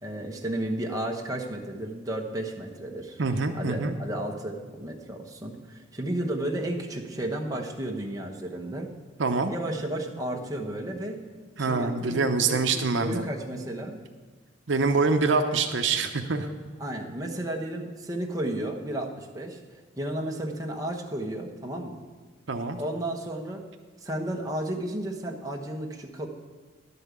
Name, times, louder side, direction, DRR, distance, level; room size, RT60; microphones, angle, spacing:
voice 1, 0.0-3.2 3.5-8.9 9.5-11.2 11.6-14.0 16.8-19.6 20.0-22.0 22.8-23.6 24.0-26.3, right 1 dB, 20° right, 1 dB, 1.1 m, -33 dB
voice 2, 3.2-4.0 9.2-9.5 11.6-13.2 14.7-16.5 22.5-22.8, right 4 dB, 75° right, 6 dB, 0.7 m, -25 dB
11.5 x 5.5 x 8.1 m, 1.4 s
head